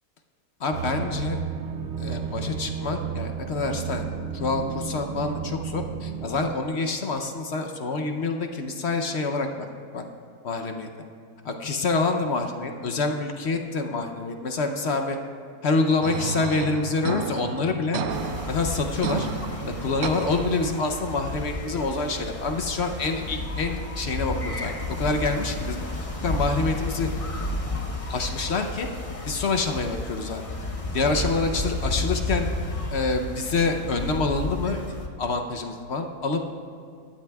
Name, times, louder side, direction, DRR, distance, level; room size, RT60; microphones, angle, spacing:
voice 1, 0.6-1.4 2.0-4.1 4.3-9.7 9.9-10.0 10.4-10.9 11.4-15.2 15.6-18.0 18.4-19.3 19.6-27.1 28.1-28.9 29.3-30.4 30.9-32.5 32.9-34.8 35.2-36.4, left 3 dB, 55° left, 5 dB, 0.9 m, -27 dB
sound 1, 0.7-6.6, right 7 dB, 65° right, 0.8 m, -32 dB
sound 2, 16.0-21.0, right 6 dB, 85° right, 1.2 m, -33 dB
sound 3, 18.1-35.1, left 2 dB, 30° left, 0.8 m, -32 dB
18.5 x 12.5 x 2.3 m, 2.4 s
omnidirectional pair, 1.5 m